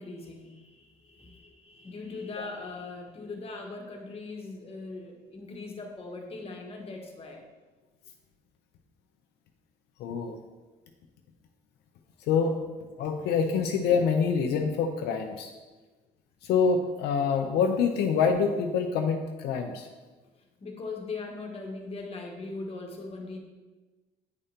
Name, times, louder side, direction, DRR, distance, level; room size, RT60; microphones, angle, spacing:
voice 1, 0.0-7.4 20.6-23.4, left 3 dB, 35° left, 1 dB, 1.4 m, -40 dB
voice 2, 10.0-10.4 12.3-12.5 13.0-15.5 16.4-19.9, left 6 dB, 80° left, 4 dB, 0.6 m, -26 dB
9.4 x 5.1 x 2.8 m, 1.2 s
cardioid pair, 110°, 17 cm